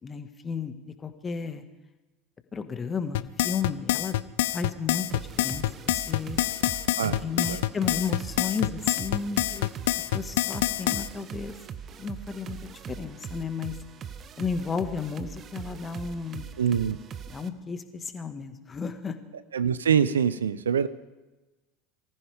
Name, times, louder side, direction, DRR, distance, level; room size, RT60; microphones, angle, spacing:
voice 1, 0.0-0.7 1.0-1.6 2.5-4.2 4.5-6.4 7.0-9.7 10.1-11.6 12.0-12.6 12.9-13.7 14.4-16.5 17.3-19.2, left 5 dB, 25° left, 8 dB, 1.7 m, -33 dB
sound 1, 3.1-11.1, left 15 dB, 70° left, 0.6 m, -26 dB
sound 2, 5.1-17.5, right 7 dB, 40° right, 1.0 m, -41 dB
voice 2, 7.0-7.6 16.6-17.0 19.5-20.9, right 7 dB, 85° right, 16 dB, 0.7 m, -25 dB
24.5 x 14.5 x 3.6 m, 1.1 s
hypercardioid pair, 75°, 0 cm